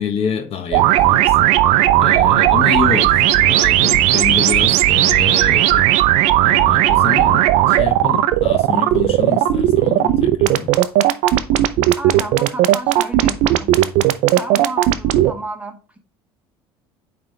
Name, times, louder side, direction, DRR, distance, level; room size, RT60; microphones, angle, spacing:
voice 1, 0.0-1.5 2.0-5.8 6.4-10.7, left 7 dB, 55° left, 1.0 m, -26 dB
sound 1, 0.7-15.3, right 14 dB, 70° right, 0.5 m, -15 dB
voice 2, 12.0-13.7 14.3-16.0, right 2 dB, 10° right, 1.2 m, -32 dB
8.8 x 3.5 x 3.3 m
supercardioid pair, 80°, 12 cm